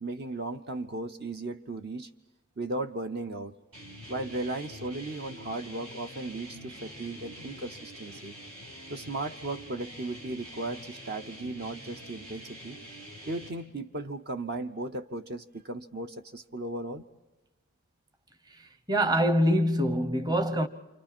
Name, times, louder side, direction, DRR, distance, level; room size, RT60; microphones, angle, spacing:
voice 1, 0.0-2.1 2.6-3.5 4.1-8.4 8.9-12.8 13.3-17.0, right 2 dB, 45° right, 0.7 m, -36 dB
sound 1, 3.7-13.5, equal, 85° right, 7.0 m, -46 dB
voice 2, 18.6-20.7, equal, 20° right, 0.9 m, -25 dB
29.0 x 27.0 x 4.4 m
head